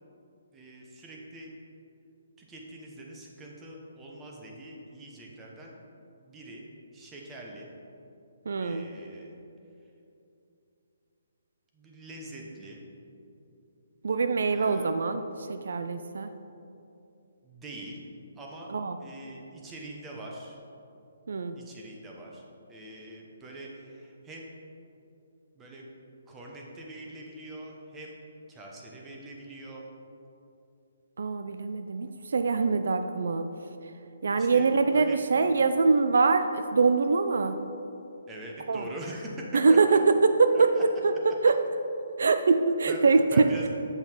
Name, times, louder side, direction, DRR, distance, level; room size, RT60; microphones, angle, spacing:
voice 1, 0.5-1.5 2.4-5.7 6.2-6.7 6.9-7.7 8.6-9.3 11.7-12.8 14.5-14.9 17.4-18.1 18.4-18.7 19.0-20.6 21.6-22.4 22.7-24.5 25.6-25.8 26.3-28.2 28.5-29.8 34.4-35.2 35.6-35.7 38.3-40.0 40.5-40.8 42.9-43.0 43.3-43.7, right 1 dB, 15° right, -2 dB, 1.0 m, -43 dB
voice 2, 8.5-8.9 14.0-16.3 18.7-19.0 21.3-21.6 31.2-33.5 34.2-37.6 38.7-38.9 39.5-41.6 42.2-43.7, right 4 dB, 75° right, 9 dB, 0.4 m, -24 dB
7.9 x 5.5 x 4.5 m, 2.7 s
hypercardioid pair, 155°, 0 cm